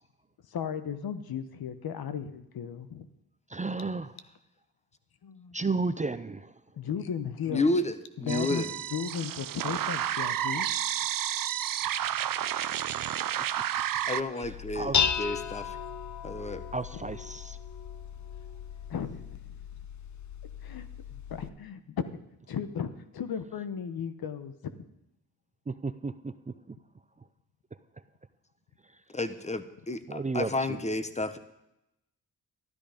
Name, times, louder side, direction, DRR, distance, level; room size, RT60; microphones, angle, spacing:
voice 1, 0.5-3.1 5.2-5.5 6.7-7.6 8.2-8.6 8.9-10.7 14.4-14.5 15.0-15.1 18.9-19.6 20.6-22.2 22.5-24.8, left 7 dB, 70° left, 11 dB, 1.2 m, -36 dB
voice 2, 3.5-4.1 5.5-6.5 14.7-15.0 16.7-17.6 25.7-26.3 26.7-26.8 30.1-30.5, right 3 dB, 20° right, 12 dB, 0.6 m, -32 dB
voice 3, 7.5-7.9 8.2-8.7 14.1-15.8 16.2-16.6 29.1-31.4, left 2 dB, 20° left, 12 dB, 1.1 m, -31 dB
sound 1, 8.3-14.2, right 11 dB, 60° right, 0.7 m, -31 dB
Dishes pots and pans, 14.4-21.5, left 7 dB, 50° left, 0.9 m, -35 dB
13.0 x 12.5 x 5.1 m, 0.85 s
cardioid pair, 70°, 38 cm